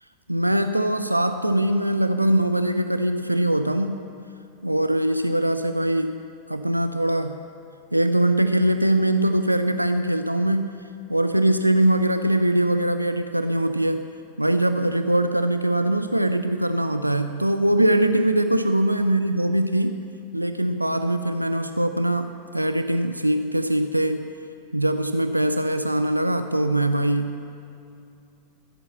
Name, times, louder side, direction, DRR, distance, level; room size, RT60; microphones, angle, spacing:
voice 1, 0.3-4.0 4.6-6.2 6.5-7.4 7.9-10.7 11.1-14.1 14.4-20.1 20.3-24.3 24.7-27.4, right 1 dB, 85° right, 9 dB, 0.4 m, -22 dB
15.0 x 7.9 x 7.4 m, 2.6 s
figure-of-eight pair, 90°, 0 cm